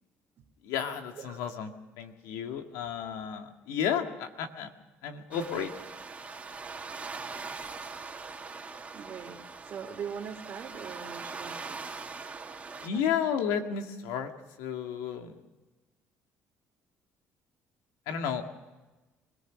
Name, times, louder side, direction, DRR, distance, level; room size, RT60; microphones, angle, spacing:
voice 1, 0.6-1.7 2.0-4.7 5.0-5.7 12.8-14.3 14.6-15.4 18.1-18.4, left 8 dB, 85° left, 5 dB, 2.0 m, -32 dB
sound 1, 5.3-12.9, right 4 dB, 25° right, 2.4 m, -42 dB
voice 2, 8.9-11.8 12.9-13.0, right 7 dB, 50° right, 5 dB, 2.8 m, -41 dB
24.5 x 17.5 x 6.3 m, 1.1 s
supercardioid pair, 90°, 5 cm